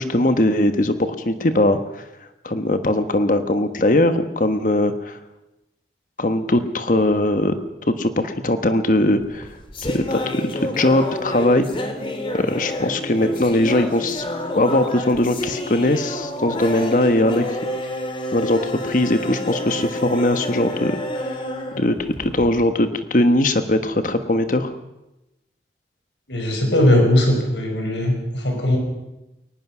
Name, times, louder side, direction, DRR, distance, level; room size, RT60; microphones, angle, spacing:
voice 1, 0.0-1.8 2.4-5.2 6.2-7.6 7.9-9.5 9.8-11.9 12.3-14.2 14.5-17.5 18.3-21.2 21.8-24.7, left 1 dB, 45° left, 9 dB, 1.2 m, -20 dB
sound 1, 9.2-22.7, left 1 dB, 30° left, 2.3 m, -29 dB
voice 2, 26.3-28.8, left 1 dB, 85° left, 2 dB, 5.4 m, -19 dB
22.0 x 19.5 x 6.1 m, 0.96 s
head